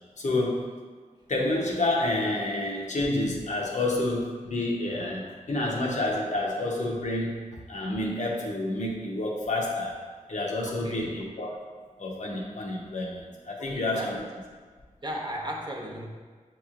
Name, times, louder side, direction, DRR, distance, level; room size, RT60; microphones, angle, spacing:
voice 1, 0.2-0.7 1.3-7.3 7.7-10.0 10.3-11.5 12.0-14.3, left 2 dB, 65° left, -2 dB, 0.8 m, -29 dB
voice 2, 10.6-11.1 13.6-14.2 15.0-16.1, equal, 35° right, -1 dB, 0.8 m, -36 dB
6.8 x 3.0 x 2.4 m, 1.5 s
wide cardioid pair, 65°, 13 cm